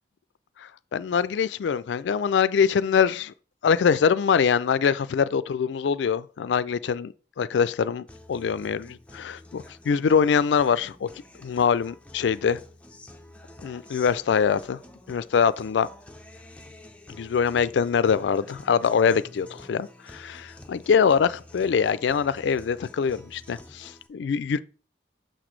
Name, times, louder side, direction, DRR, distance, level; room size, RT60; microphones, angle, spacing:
voice 1, 0.9-3.3 3.6-11.1 11.4-12.6 13.6-14.8 15.1-15.9 17.2-24.6, left 6 dB, 85° left, 0.4 m, -23 dB
Guitar, 8.1-24.1, left 1 dB, 5° left, 0.5 m, -49 dB
6.5 x 6.0 x 3.2 m
head